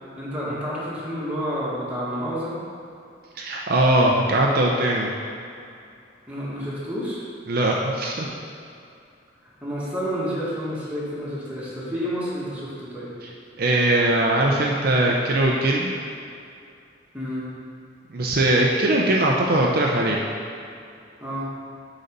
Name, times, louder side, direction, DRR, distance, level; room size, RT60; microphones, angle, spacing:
voice 1, 0.2-2.6 6.3-7.2 9.6-13.1 17.1-17.5 21.2-21.5, equal, 10° right, -8 dB, 1.7 m, -29 dB
voice 2, 3.4-5.1 7.5-8.3 13.6-15.9 18.1-20.2, right 1 dB, 55° right, -2 dB, 0.6 m, -20 dB
8.0 x 4.1 x 5.3 m, 2.5 s
head